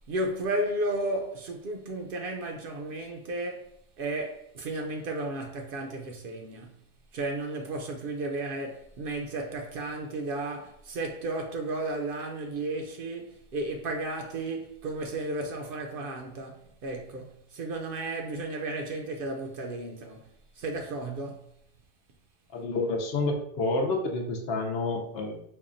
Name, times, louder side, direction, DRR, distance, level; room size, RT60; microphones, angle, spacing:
voice 1, 0.1-3.7 4.0-6.7 7.1-20.3 20.6-21.5, right 2 dB, 60° right, 0.7 m, -33 dB
voice 2, 22.5-25.4, left 2 dB, 65° left, 0.8 m, -29 dB
5.3 x 2.2 x 2.5 m
omnidirectional pair, 1.1 m